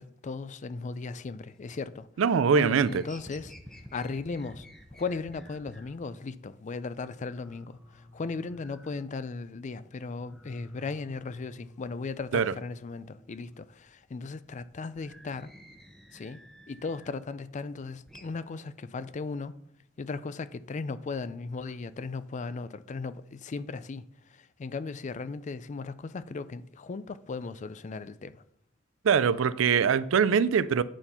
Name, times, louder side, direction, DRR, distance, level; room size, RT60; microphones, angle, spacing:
voice 1, 0.0-2.1 2.5-3.5 3.9-4.7 4.9-15.5 16.1-16.4 16.7-19.6 20.0-24.0 24.3-28.4, left 4 dB, 35° left, 0.4 m, -37 dB
sound 1, 1.5-2.2 2.5-6.0 6.4-6.5 6.8-6.9 7.1-9.6 9.9-12.5 12.8-17.2 17.6-18.3, equal, ahead, 0.8 m, -52 dB
voice 2, 2.2-3.0 12.3-12.5 29.0-30.8, right 6 dB, 70° right, 0.4 m, -23 dB
8.9 x 4.4 x 5.5 m
head